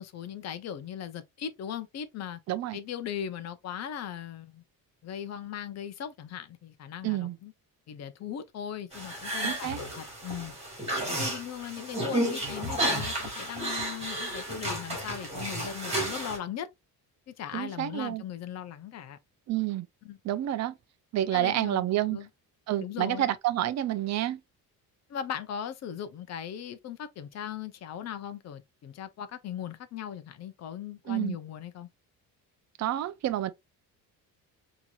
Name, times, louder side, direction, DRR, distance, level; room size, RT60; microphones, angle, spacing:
voice 1, 0.0-2.4 2.7-4.6 5.0-7.5 7.9-10.6 11.1-16.7 17.3-19.2 20.0-20.2 21.3-22.3 22.8-23.3 25.1-31.9, left 9 dB, 45° left, 0.7 m, -38 dB
voice 2, 2.5-2.8 7.0-7.4 9.4-9.8 17.5-18.2 19.5-19.9 20.2-20.7 21.1-22.2 22.7-24.4 31.1-31.4 32.8-33.5, right 13 dB, 45° right, 0.5 m, -29 dB
sound 1, 8.9-16.4, right 1 dB, 15° right, 2.0 m, -32 dB
4.4 x 2.9 x 2.4 m
cardioid pair, 145°, 36 cm